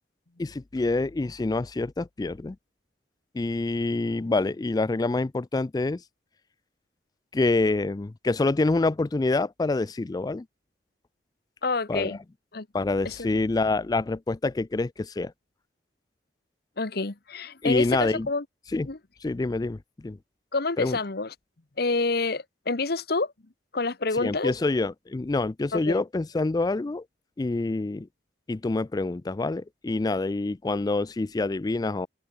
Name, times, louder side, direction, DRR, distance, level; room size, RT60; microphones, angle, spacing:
voice 1, 0.4-2.6 3.3-6.0 7.3-10.5 11.9-12.2 12.7-15.3 17.6-18.3 18.7-18.9 19.2-20.2 20.8-21.0 24.1-27.0 27.4-28.1 28.5-32.1, left 3 dB, 20° left, 0.4 m, -26 dB
voice 2, 11.6-12.2 12.5-12.7 13.0-13.2 16.8-18.4 18.9-19.0 20.5-21.3 21.8-23.3 23.7-24.5 25.7-26.0, left 3 dB, 60° left, 1.2 m, -28 dB
open air
head